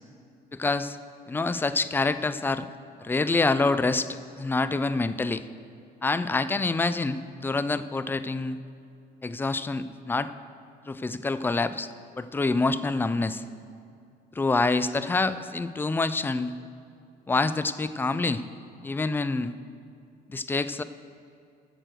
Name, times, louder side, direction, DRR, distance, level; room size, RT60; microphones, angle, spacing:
voice 1, 0.5-1.0 1.3-2.7 3.0-5.4 6.0-8.6 9.2-10.3 10.9-13.4 14.3-16.5 17.3-18.4 18.8-19.5 20.3-20.8, left 3 dB, 10° left, 13 dB, 0.4 m, -26 dB
8.9 x 6.6 x 7.7 m, 2.5 s
cardioid pair, 110°, 17 cm